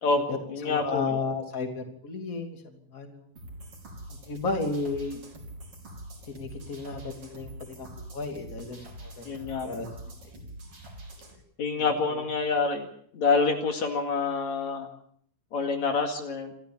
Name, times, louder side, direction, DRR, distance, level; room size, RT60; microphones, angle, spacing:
voice 1, 0.0-1.1 9.3-9.7 11.6-12.9 13.1-14.9 15.5-16.5, left 4 dB, 60° left, 4 dB, 3.4 m, -27 dB
voice 2, 0.6-3.3 4.3-5.2 6.3-9.9 11.8-12.2, left 3 dB, 25° left, 4 dB, 3.1 m, -34 dB
sound 1, 3.4-11.4, right 1 dB, 45° right, 5.6 m, -44 dB
27.0 x 14.0 x 8.8 m, 0.66 s
omnidirectional pair, 3.7 m